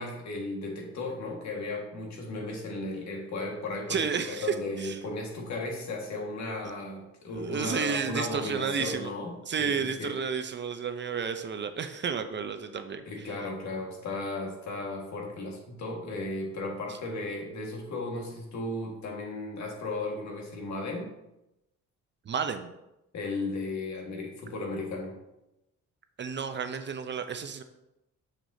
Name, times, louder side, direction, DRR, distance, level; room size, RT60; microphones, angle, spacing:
voice 1, 0.0-10.1 13.1-21.1 23.1-25.2, left 2 dB, 65° left, 1 dB, 1.7 m, -35 dB
voice 2, 3.9-5.0 7.3-9.1 9.5-13.3 22.3-22.7 26.2-27.6, right 6 dB, 40° right, 8 dB, 0.5 m, -32 dB
6.6 x 6.1 x 2.7 m, 0.91 s
cardioid pair, 90°, 30 cm